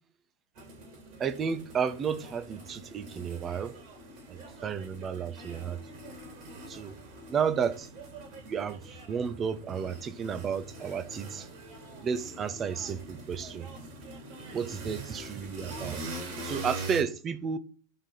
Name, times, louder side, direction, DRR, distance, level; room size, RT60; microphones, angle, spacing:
sound 1, 0.6-17.0, right 2 dB, 45° right, 3.5 m, -43 dB
voice 1, 1.2-3.7 4.3-5.8 6.7-6.9 7.3-7.9 8.5-11.5 12.0-13.7 14.5-16.0 16.4-17.6, right 7 dB, 25° right, 0.7 m, -32 dB
11.0 x 3.8 x 4.2 m
figure-of-eight pair, 90°, 0 cm